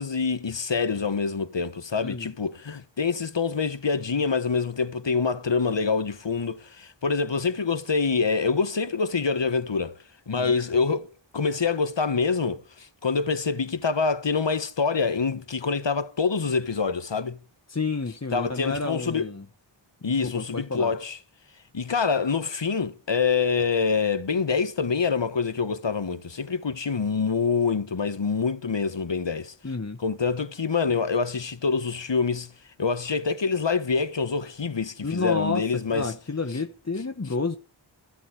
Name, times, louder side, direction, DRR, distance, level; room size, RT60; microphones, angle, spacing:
voice 1, 0.0-9.9 10.3-11.1 11.3-17.4 18.3-19.3 20.0-21.2 21.7-29.5 30.0-32.5 32.8-36.1, left 5 dB, 70° left, 1.4 m, -26 dB
voice 2, 2.0-2.3 10.3-10.5 17.7-19.4 20.2-20.9 29.6-30.0 35.0-37.6, left 3 dB, 35° left, 1.2 m, -30 dB
15.5 x 7.9 x 9.0 m
wide cardioid pair, 55°, 46 cm